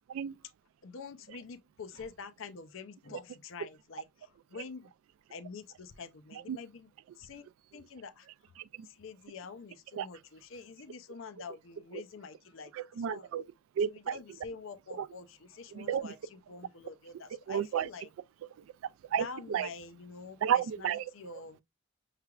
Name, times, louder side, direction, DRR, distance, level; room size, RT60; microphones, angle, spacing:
voice 1, 0.8-4.9 5.3-6.9 7.2-7.4 7.7-8.3 9.0-12.7 13.1-13.3 13.9-16.2 16.5-18.1 19.2-20.4 20.8-21.6, left 5 dB, 75° left, 0.5 m, -46 dB
voice 2, 12.7-13.4 13.8-14.2 15.0-15.1 15.7-16.1 17.5-17.9 19.1-19.7 20.4-21.1, right 8 dB, 85° right, 0.3 m, -32 dB
5.7 x 3.2 x 2.3 m
head